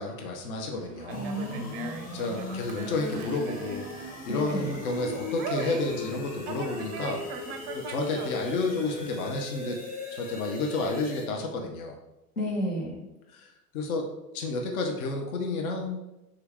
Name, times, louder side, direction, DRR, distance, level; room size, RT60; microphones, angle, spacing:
voice 1, 0.0-1.2 2.1-3.9 4.2-7.2 7.7-9.8 10.1-12.0 13.3-13.5 13.7-14.1 14.3-16.0, left 3 dB, 65° left, 2 dB, 0.7 m, -31 dB
Conversation, 0.8-9.2, right 5 dB, 35° right, 0.4 m, -41 dB
voice 2, 1.1-2.2 4.3-4.8 12.4-13.0, equal, 85° left, -3 dB, 1.2 m, -32 dB
sound 1, 1.1-11.3, left 3 dB, 20° left, 0.7 m, -39 dB
3.6 x 2.8 x 3.4 m, 0.95 s
figure-of-eight pair, 75°, 45 cm